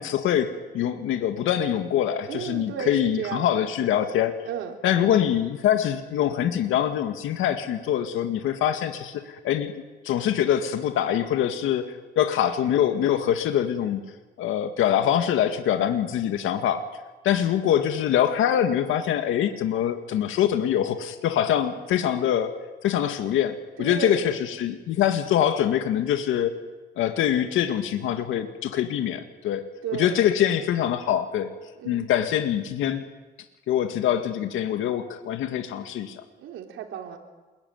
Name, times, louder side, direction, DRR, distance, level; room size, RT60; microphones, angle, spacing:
voice 1, 0.0-4.4 4.8-9.7 10.0-14.0 14.4-16.9 17.2-22.6 22.8-26.6 27.0-29.7 30.0-31.5 31.9-33.0 33.7-36.2, left 10 dB, 85° left, 7 dB, 2.0 m, -24 dB
voice 2, 2.3-3.7 4.4-4.8 23.8-24.4 29.8-30.2 31.8-32.1 36.4-37.2, right 8 dB, 85° right, 3 dB, 4.1 m, -34 dB
28.0 x 21.5 x 9.4 m, 1.2 s
cardioid pair, 90°, 20 cm